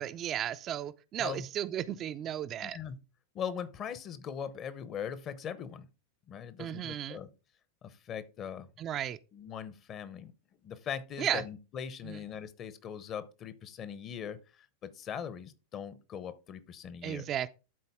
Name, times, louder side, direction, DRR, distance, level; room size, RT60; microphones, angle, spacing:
voice 1, 0.0-2.8 6.6-7.2 8.8-9.2 11.2-11.4 12.0-12.2 17.0-17.5, right 10 dB, 35° right, 0.4 m, -34 dB
voice 2, 2.6-3.0 3.3-5.9 6.3-7.3 7.8-8.7 9.3-10.3 10.6-17.3, left 8 dB, 35° left, 0.8 m, -40 dB
12.0 x 4.1 x 3.5 m
figure-of-eight pair, 90°, 0 cm